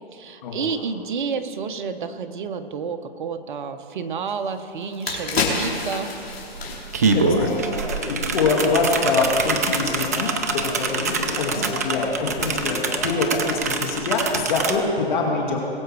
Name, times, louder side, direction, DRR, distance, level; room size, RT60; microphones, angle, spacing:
voice 1, 0.1-6.1 11.5-11.8 14.6-15.1, right 5 dB, 50° right, 8 dB, 1.0 m, -30 dB
sound 1, 4.4-4.5 4.8-8.1 8.4-8.6, left 4 dB, 70° left, 3.4 m, -29 dB
sound 2, 5.9-6.0 6.3-14.8, right 4 dB, 15° right, 0.3 m, -25 dB
voice 2, 7.1-7.6 8.1-15.6, left 3 dB, 45° left, -1 dB, 2.2 m, -24 dB
sound 3, 7.3-13.6, left 4 dB, 85° left, 1.5 m, -35 dB
21.0 x 7.9 x 4.7 m, 2.7 s
hypercardioid pair, 145°, 32 cm